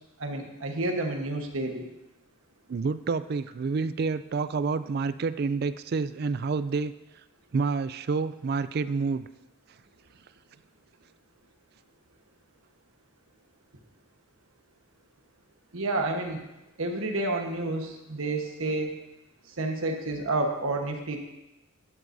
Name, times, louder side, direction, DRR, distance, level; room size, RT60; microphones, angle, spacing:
voice 1, 0.2-1.9 15.7-16.4 16.8-18.9 19.6-21.2, right 2 dB, 70° right, 3 dB, 1.3 m, -30 dB
voice 2, 2.7-6.9 7.5-9.3, right 4 dB, 45° right, 14 dB, 0.3 m, -28 dB
12.0 x 11.0 x 2.7 m, 0.97 s
head